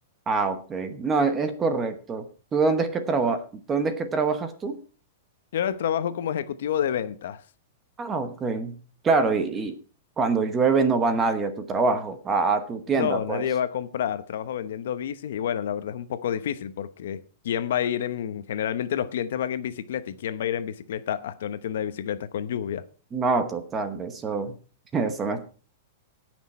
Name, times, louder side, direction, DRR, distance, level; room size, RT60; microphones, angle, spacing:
voice 1, 0.3-2.2 2.5-4.8 8.0-8.8 9.0-9.8 10.2-13.4 23.1-24.5 24.9-25.4, right 4 dB, 10° right, 1.0 m, -25 dB
voice 2, 5.5-7.4 12.9-22.8, left 9 dB, 60° left, 0.9 m, -29 dB
18.0 x 6.2 x 4.3 m
supercardioid pair, 180°, 0 cm